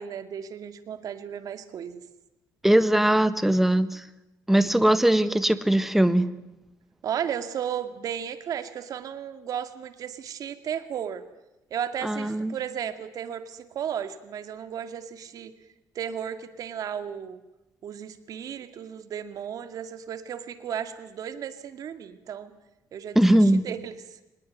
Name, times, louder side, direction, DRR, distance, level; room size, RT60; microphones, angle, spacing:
voice 1, 0.0-2.0 7.0-11.2 11.7-15.5 16.0-17.4 17.8-22.5 22.9-24.2, right 8 dB, 60° right, 10 dB, 2.2 m, -34 dB
voice 2, 2.6-4.0 4.5-6.3 12.0-12.6 23.1-23.6, right 1 dB, 5° right, 13 dB, 1.3 m, -20 dB
24.5 x 20.0 x 9.4 m, 0.94 s
cardioid pair, 145°, 7 cm